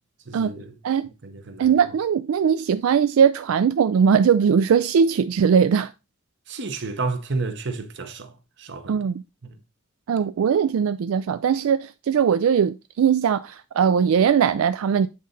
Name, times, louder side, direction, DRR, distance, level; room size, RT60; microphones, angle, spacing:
voice 1, 0.3-0.7 1.2-1.8 6.5-9.0 9.4-9.6, right 3 dB, 60° right, 0.9 m, -31 dB
voice 2, 1.6-5.9 8.9-9.2 10.1-15.1, right 7 dB, 90° right, 0.3 m, -20 dB
8.3 x 4.0 x 3.9 m
head